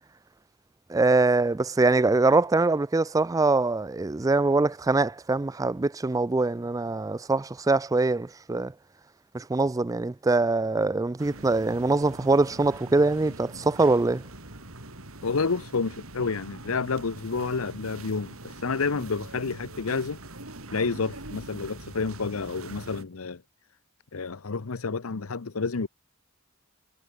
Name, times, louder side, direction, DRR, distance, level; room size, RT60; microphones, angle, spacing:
voice 1, 0.9-8.7 9.3-14.2, right 3 dB, 15° right, 0.4 m, -23 dB
sound 1, 11.2-23.0, right 2 dB, 80° right, 5.3 m, -43 dB
voice 2, 15.2-20.2 20.7-23.4 24.1-25.9, left 4 dB, 85° left, 0.8 m, -29 dB
head